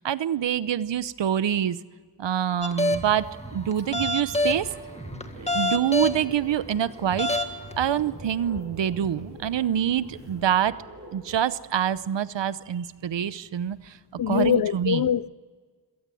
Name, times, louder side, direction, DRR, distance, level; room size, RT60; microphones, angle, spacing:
voice 1, 0.0-1.8 2.2-4.7 5.3-7.3 7.8-10.7 11.1-13.9 14.3-15.0, right 10 dB, 80° right, 0.9 m, -26 dB
sound 1, 2.6-3.2 3.7-4.7 5.2-6.2 6.7-6.8 7.2-7.7, left 1 dB, 15° left, 1.8 m, -25 dB
sound 2, 2.9-10.4, right 1 dB, 15° right, 2.8 m, -43 dB
sound 3, 4.4-11.5, right 2 dB, 35° right, 5.1 m, -48 dB
voice 2, 14.2-15.3, left 9 dB, 55° left, 0.6 m, -23 dB
26.5 x 18.0 x 7.7 m
wide cardioid pair, 120°, 43 cm